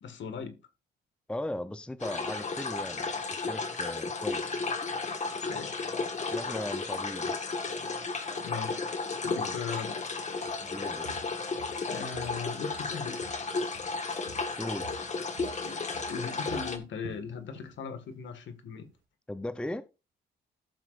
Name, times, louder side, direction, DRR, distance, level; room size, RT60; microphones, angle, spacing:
voice 1, 0.0-0.6 5.4-5.9 8.4-8.9 9.2-10.0 11.1-11.2 11.9-13.2 15.6-18.9, left 6 dB, 70° left, 1.9 m, -39 dB
voice 2, 1.3-4.7 6.3-7.3 9.4-9.6 10.6-11.2 14.6-14.9 19.3-19.8, left 1 dB, 5° left, 0.7 m, -38 dB
sound 1, 2.0-16.8, left 4 dB, 35° left, 1.7 m, -34 dB
Walk footsteps, 10.5-10.7 11.0-12.4 12.7-14.0 14.3-17.8 18.1-18.4 18.8-18.9, right 7 dB, 80° right, 1.8 m, -50 dB
14.0 x 7.3 x 2.6 m
cardioid pair, 90°, 20 cm